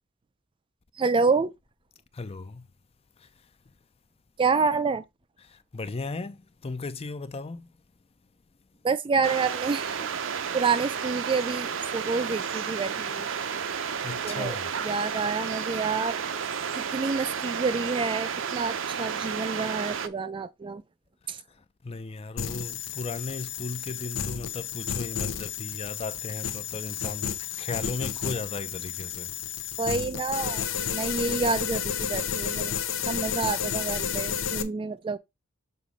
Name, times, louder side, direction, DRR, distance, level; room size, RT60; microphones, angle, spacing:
voice 1, 1.0-1.5 4.4-5.0 8.8-10.1 10.5-13.3 14.2-14.6 14.8-16.2 16.8-20.8 21.3-21.4 29.8-32.7 33.1-35.2, right 4 dB, 25° right, 0.3 m, -28 dB
voice 2, 2.1-2.7 3.2-3.3 5.4-7.7 14.0-14.7 21.3-29.4, left 3 dB, 30° left, 0.5 m, -36 dB
sound 1, 9.2-20.1, right 7 dB, 70° right, 0.6 m, -32 dB
sound 2, 22.4-34.6, left 8 dB, 70° left, 0.7 m, -32 dB
6.6 x 3.0 x 5.3 m
head